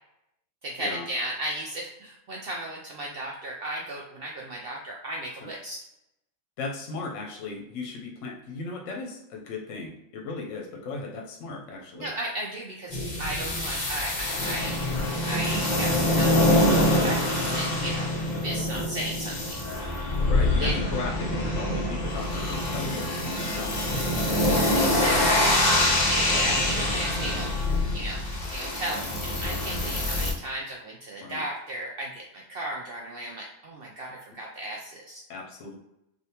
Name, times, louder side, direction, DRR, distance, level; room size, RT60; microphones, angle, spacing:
voice 1, 0.6-5.8 11.9-14.8 15.3-16.8 17.0-18.1 18.4-19.6 20.6-20.7 24.4-25.4 26.1-27.5 27.9-28.2 28.5-35.2, right 1 dB, 75° right, -1 dB, 0.5 m, -35 dB
voice 2, 6.6-12.1 20.3-25.4 26.2-26.5 31.2-31.4 35.3-35.8, left 3 dB, 65° left, 0 dB, 0.9 m, -37 dB
sound 1, 12.9-30.3, left 1 dB, 45° left, 0.6 m, -25 dB
3.3 x 2.5 x 2.8 m, 0.84 s
omnidirectional pair, 1.5 m